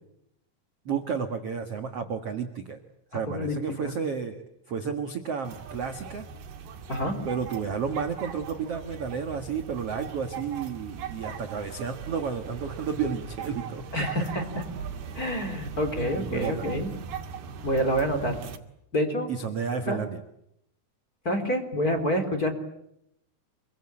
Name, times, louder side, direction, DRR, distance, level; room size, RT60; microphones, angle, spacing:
voice 1, 0.9-2.8 3.1-6.3 7.3-13.9 16.1-16.7 19.3-20.2, right 6 dB, 50° right, 6 dB, 1.9 m, -32 dB
voice 2, 3.3-3.9 6.9-7.2 13.9-14.4 15.1-16.9 17.6-18.4 18.9-19.3 19.9-20.0 21.2-22.5, equal, 20° left, 6 dB, 3.7 m, -27 dB
sound 1, 5.5-18.6, right 6 dB, 70° right, 4.0 m, -39 dB
26.5 x 24.0 x 8.8 m, 0.79 s
omnidirectional pair, 4.8 m